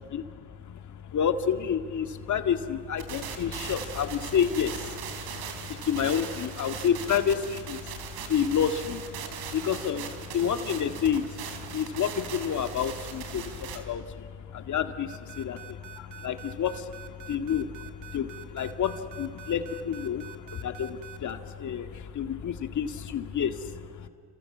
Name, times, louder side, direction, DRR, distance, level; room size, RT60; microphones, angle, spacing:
voice 1, 0.0-24.1, left 8 dB, 45° left, 7 dB, 2.1 m, -30 dB
sound 1, 3.0-13.8, right 8 dB, 75° right, 3.8 m, -40 dB
sound 2, 15.1-21.3, right 12 dB, 45° right, 2.3 m, -46 dB
30.0 x 27.0 x 7.4 m, 2.1 s
cardioid pair, 105°, 41 cm